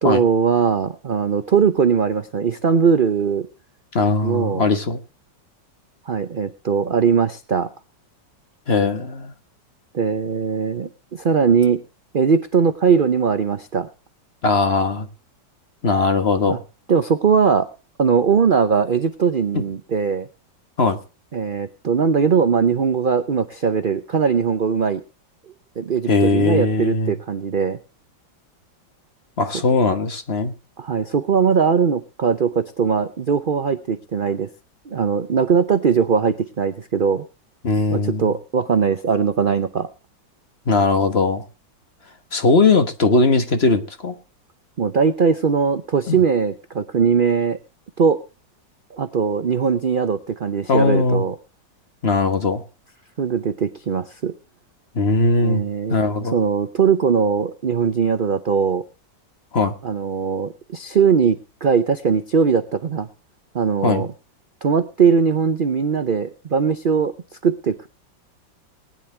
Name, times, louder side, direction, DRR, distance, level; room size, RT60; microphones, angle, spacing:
voice 1, 0.0-3.5 4.2-4.6 6.1-7.7 9.9-11.8 12.1-13.9 16.5-16.6 16.9-17.7 18.0-20.3 21.3-25.0 25.8-27.8 30.8-34.5 34.9-37.2 37.9-39.9 44.8-47.6 48.0-48.2 48.9-51.4 53.2-54.3 55.4-56.0 56.3-58.8 59.8-63.1 63.5-64.1 64.6-67.1 67.4-67.9, right 6 dB, 65° right, 10 dB, 0.5 m, -20 dB
voice 2, 3.9-5.0 8.7-9.3 14.4-15.1 15.8-16.6 20.8-21.0 26.1-27.1 29.4-30.5 37.6-38.3 40.7-41.4 42.3-44.1 46.1-46.2 50.7-51.2 52.0-52.6 54.9-55.6 55.9-56.4 59.5-59.7 63.8-64.1, left 3 dB, 35° left, 8 dB, 1.4 m, -19 dB
19.5 x 10.5 x 3.3 m, 0.32 s
omnidirectional pair, 2.0 m